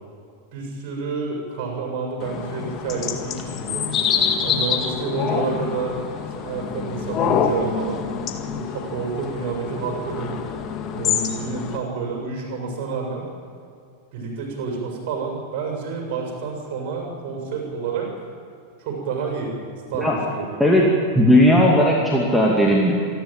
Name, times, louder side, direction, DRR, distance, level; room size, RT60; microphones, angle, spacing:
voice 1, 0.5-3.9 4.4-6.0 6.3-8.0 8.6-10.4 10.9-13.3 14.1-18.1 18.8-19.5 19.9-20.5, right 5 dB, 45° right, 1 dB, 7.0 m, -29 dB
sound 1, 2.2-11.8, left 7 dB, 30° left, 2.0 m, -26 dB
voice 2, 20.6-20.9 21.1-22.9, equal, ahead, -3 dB, 2.5 m, -16 dB
27.5 x 11.5 x 8.9 m, 2.4 s
figure-of-eight pair, 90°, 0 cm